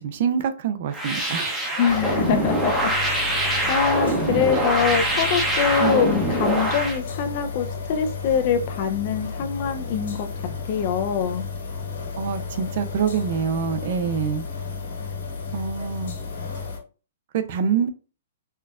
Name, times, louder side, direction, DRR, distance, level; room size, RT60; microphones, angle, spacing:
voice 1, 0.0-1.6 4.5-4.6 5.8-6.0 12.2-14.4 15.5-16.2 17.3-17.9, right 7 dB, 50° right, 0.5 m, -25 dB
sound 1, 0.9-7.0, right 1 dB, 5° right, 0.7 m, -24 dB
voice 2, 1.8-3.3 3.7-10.3 10.7-11.4, left 7 dB, 45° left, 0.5 m, -24 dB
sound 2, 1.9-16.8, left 5 dB, 75° left, 1.7 m, -33 dB
4.4 x 2.1 x 2.4 m
hypercardioid pair, 150°, 0 cm